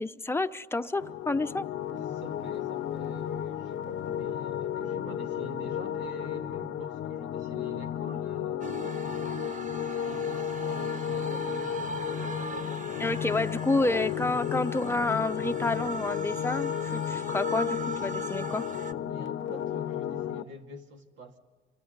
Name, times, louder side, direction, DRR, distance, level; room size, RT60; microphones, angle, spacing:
voice 1, 0.0-1.7 13.0-18.7, left 2 dB, 10° left, 0.8 m, -29 dB
sound 1, 1.0-20.4, left 10 dB, 80° left, 0.9 m, -33 dB
voice 2, 1.9-9.7 9.9-12.4 19.1-21.4, right 2 dB, 70° right, 2.7 m, -47 dB
sound 2, 8.6-18.9, right 4 dB, 40° right, 1.0 m, -40 dB
29.0 x 25.0 x 4.1 m
cardioid pair, 90°, 20 cm